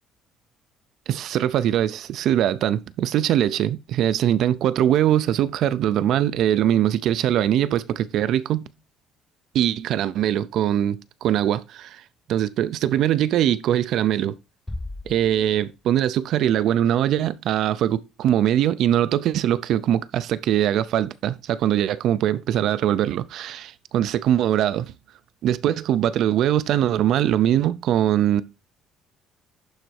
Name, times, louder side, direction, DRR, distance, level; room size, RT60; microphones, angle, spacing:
voice 1, 1.1-8.7 9.5-12.0 12.3-14.4 15.1-24.9 25.4-28.4, right 11 dB, 50° right, 0.5 m, -22 dB
Bass drum, 14.7-16.1, left 2 dB, 5° left, 0.4 m, -36 dB
11.5 x 4.0 x 4.6 m
cardioid pair, 175°, 0 cm